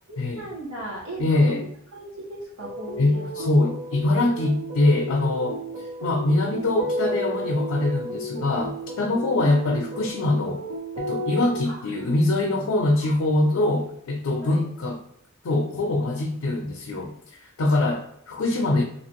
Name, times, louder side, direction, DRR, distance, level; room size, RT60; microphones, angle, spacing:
voice 1, 0.1-3.4 5.0-5.1 5.5-5.6 9.3-9.9 11.6-12.0 13.0-13.2 14.4-14.6 17.7-18.0, right 1 dB, 85° right, -5 dB, 1.3 m, -38 dB
voice 2, 1.2-1.7 3.0-5.6 6.0-10.6 11.0-15.0 15.4-18.8, left 2 dB, 65° left, 1 dB, 0.4 m, -23 dB
sound 1, 2.6-11.6, equal, 60° right, 0.7 m, -33 dB
2.9 x 2.5 x 3.0 m, 0.69 s
head